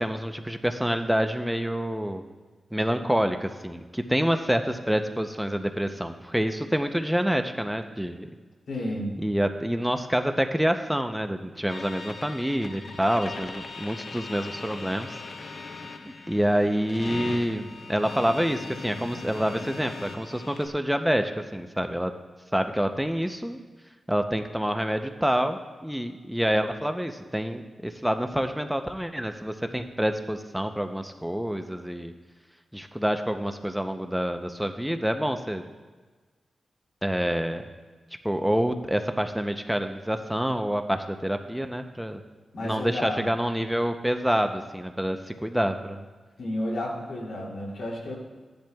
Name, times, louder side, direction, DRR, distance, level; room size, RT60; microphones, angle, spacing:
voice 1, 0.0-2.2 2.7-8.3 9.2-15.2 16.3-22.1 22.5-23.6 24.1-32.1 32.7-35.6 37.0-37.6 38.2-42.2 42.6-46.0, equal, 5° right, 6 dB, 0.5 m, -27 dB
voice 2, 8.7-9.1 42.5-43.3 46.4-48.1, left 1 dB, 80° left, -2 dB, 2.6 m, -31 dB
sound 1, 11.7-20.7, left 4 dB, 65° left, 0.8 m, -39 dB
15.5 x 10.5 x 2.3 m, 1.4 s
wide cardioid pair, 85°, 0 cm